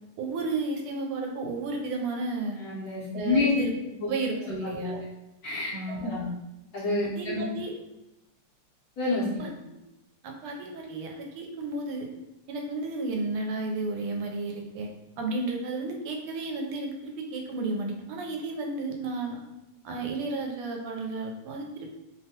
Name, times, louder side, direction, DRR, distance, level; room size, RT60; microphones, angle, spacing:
voice 1, 0.2-2.6 3.1-3.7 4.0-5.0 5.7-6.3 7.0-7.7 9.4-9.5 10.2-12.1 12.5-14.9 15.2-19.4 19.8-21.9, right 3 dB, 80° right, 2 dB, 1.4 m, -32 dB
voice 2, 2.6-3.5 4.5-5.0 5.4-6.2 6.7-7.4 9.0-9.5, left 3 dB, 60° left, -10 dB, 1.0 m, -29 dB
3.5 x 2.1 x 2.7 m, 0.92 s
omnidirectional pair, 2.4 m